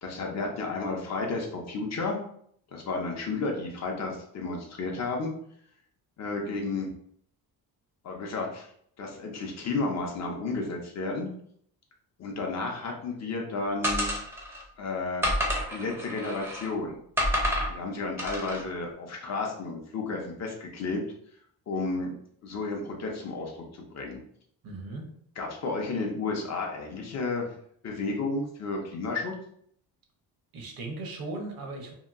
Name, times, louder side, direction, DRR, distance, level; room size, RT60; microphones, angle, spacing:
voice 1, 0.0-2.2 2.7-5.3 6.2-6.9 8.0-8.7 9.0-11.3 12.2-14.1 14.8-15.2 15.7-17.0 17.7-21.0 21.7-22.1 22.4-24.2 25.4-27.5 27.8-29.3, left 3 dB, 45° left, 0 dB, 0.6 m, -32 dB
sound 1, 13.8-14.6 15.2-16.7 17.2-17.7 18.2-18.6, equal, 5° right, 0.5 m, -29 dB
voice 2, 24.6-25.1 30.5-31.9, right 2 dB, 65° right, 2 dB, 0.8 m, -37 dB
2.8 x 2.6 x 2.4 m, 0.64 s
cardioid pair, 175°, 39 cm